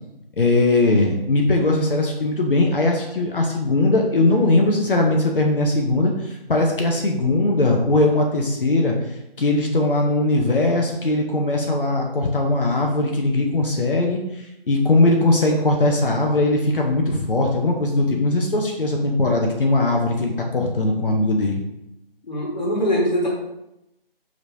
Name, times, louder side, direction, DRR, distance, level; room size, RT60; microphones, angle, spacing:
voice 1, 0.4-8.9 9.4-21.6, left 2 dB, 65° left, 1 dB, 0.8 m, -20 dB
voice 2, 22.2-23.3, equal, 45° left, -3 dB, 1.5 m, -22 dB
5.1 x 3.1 x 2.7 m, 0.88 s
figure-of-eight pair, 160°, 29 cm